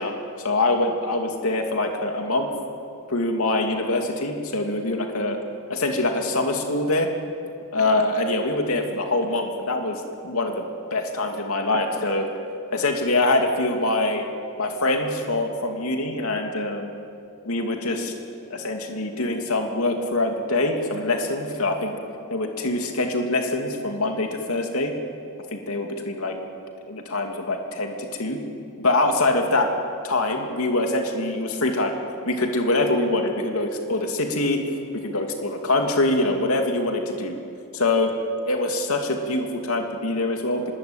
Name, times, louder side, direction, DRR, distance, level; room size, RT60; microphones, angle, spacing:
voice 1, 0.0-2.5 3.1-5.4 5.7-7.1 7.7-10.6 10.9-12.3 12.7-14.3 14.6-16.9 17.4-18.1 18.5-21.9 22.3-24.9 25.5-26.4 26.9-28.4 28.8-29.7 30.0-31.9 32.2-34.6 34.9-37.4 37.7-38.1 38.5-40.8, left 2 dB, 85° left, 3 dB, 2.8 m, -24 dB
25.5 x 21.5 x 8.9 m, 2.5 s
head